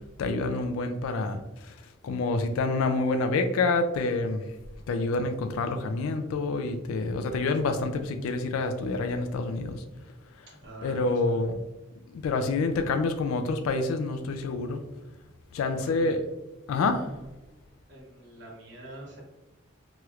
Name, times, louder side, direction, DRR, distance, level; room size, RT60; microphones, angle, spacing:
voice 1, 0.2-1.7 2.0-4.4 4.9-9.8 10.8-11.6 12.1-14.8 15.5-16.2 16.7-17.1, left 3 dB, 85° left, 7 dB, 0.3 m, -27 dB
voice 2, 10.5-11.5 15.8-16.3 17.5-17.6 17.9-19.2, right 1 dB, 60° right, -2 dB, 0.9 m, -45 dB
3.1 x 2.9 x 2.3 m, 1.0 s
head